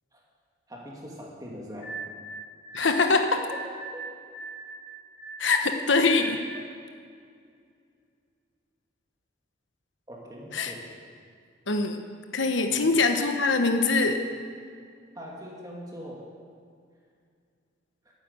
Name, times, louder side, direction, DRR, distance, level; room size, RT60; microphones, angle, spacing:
voice 1, 0.7-2.0 3.9-4.0 10.1-10.9 12.6-12.9 15.1-16.3, equal, 20° right, -3 dB, 2.5 m, -42 dB
sound 1, 1.8-6.7, right 3 dB, 40° left, 2.1 m, -41 dB
voice 2, 2.7-3.5 5.4-6.4 10.5-10.7 11.7-12.0 12.3-14.2, left 3 dB, 80° left, 6 dB, 1.1 m, -23 dB
12.5 x 9.5 x 8.3 m, 2.2 s
head